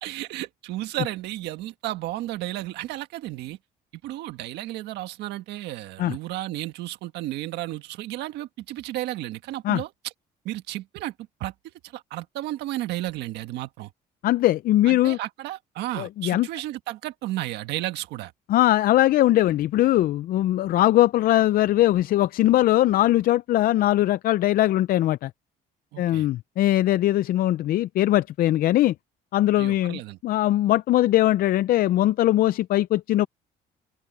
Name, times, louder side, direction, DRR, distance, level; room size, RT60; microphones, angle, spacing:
voice 1, 0.0-3.6 4.0-9.9 10.4-11.1 11.4-11.5 11.9-13.9 14.8-18.3 25.9-26.3 29.6-30.2, right 15 dB, 85° right, 1.6 m, -33 dB
voice 2, 14.2-15.2 16.0-16.5 18.5-25.3 26.0-28.9 29.3-33.3, left 14 dB, 60° left, 0.5 m, -21 dB
open air
cardioid pair, 110°, 17 cm